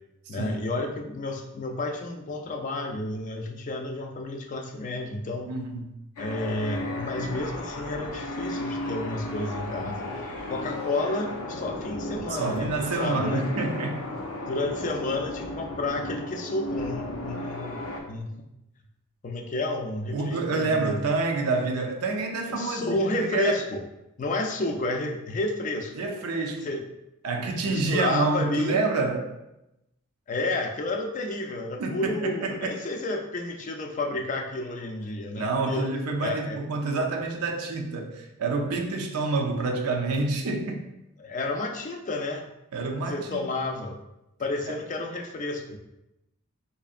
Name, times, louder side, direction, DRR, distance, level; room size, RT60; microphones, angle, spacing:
voice 1, 0.3-5.5 6.2-10.1 10.5-13.5 14.5-18.5 19.2-21.0 22.5-23.8 24.2-25.9 26.6-26.8 27.3-28.8 30.3-35.9 36.2-36.6 41.2-42.5 43.1-44.0 44.4-45.8, left 2 dB, 35° left, 4 dB, 0.4 m, -31 dB
voice 2, 5.5-5.8 12.3-14.1 20.1-23.6 25.9-26.7 27.2-29.4 31.8-32.8 35.3-40.8 42.7-43.4 44.7-44.8, right 3 dB, 90° right, 2 dB, 0.5 m, -28 dB
sound 1, 6.2-18.0, left 1 dB, 90° left, 0.6 m, -34 dB
4.3 x 2.6 x 2.4 m, 0.89 s
head